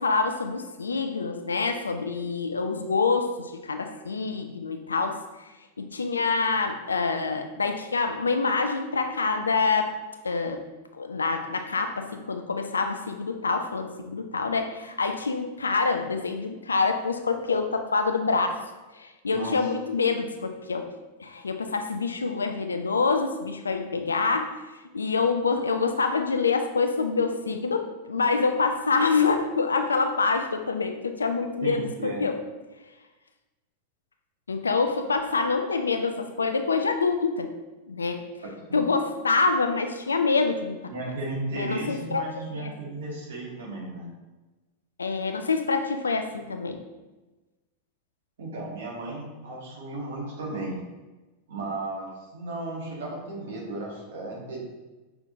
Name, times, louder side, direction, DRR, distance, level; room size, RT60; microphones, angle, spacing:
voice 1, 0.0-5.2 5.8-9.9 10.2-10.6 10.9-18.6 18.9-20.9 21.2-24.6 24.9-32.4 34.5-37.5 37.9-38.2 38.7-40.9 41.5-42.2 42.5-42.7 45.0-46.8, left 4 dB, 75° left, 6 dB, 0.4 m, -26 dB
voice 2, 31.6-32.2 38.7-38.8 40.9-44.1 48.4-50.8 51.5-54.6, right 2 dB, 60° right, -2 dB, 1.3 m, -34 dB
5.7 x 3.4 x 2.6 m, 1.2 s
figure-of-eight pair, 90°, 0 cm